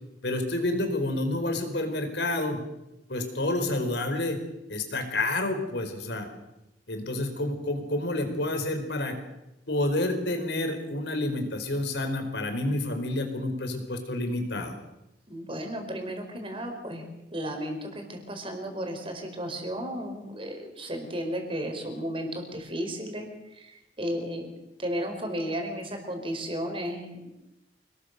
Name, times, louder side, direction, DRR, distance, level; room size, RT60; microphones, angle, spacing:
voice 1, 0.2-2.6 3.1-4.4 4.7-6.3 6.9-9.2 9.7-14.8, left 1 dB, 70° left, 7 dB, 4.6 m, -29 dB
voice 2, 15.3-17.0 17.3-24.5 24.8-27.3, equal, 30° right, 4 dB, 5.0 m, -34 dB
27.5 x 20.5 x 6.8 m, 0.92 s
head